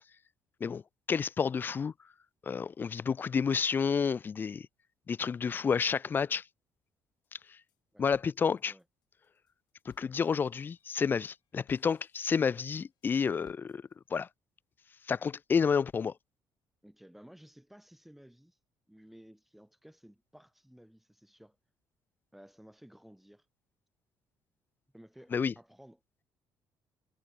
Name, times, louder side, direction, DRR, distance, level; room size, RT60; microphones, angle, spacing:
voice 1, 1.1-1.9 2.5-4.7 5.1-6.4 8.0-8.7 9.9-13.8 14.1-14.3 15.1-16.1 25.3-25.5, left 6 dB, 25° left, 0.3 m, -30 dB
sound 1, 7.2-7.8 8.1-14.2, left 12 dB, 60° left, 4.2 m, -66 dB
voice 2, 16.8-18.6 18.9-21.6 22.3-23.5 24.9-26.0, equal, ahead, 3.2 m, -56 dB
cardioid pair, 155°, 8 cm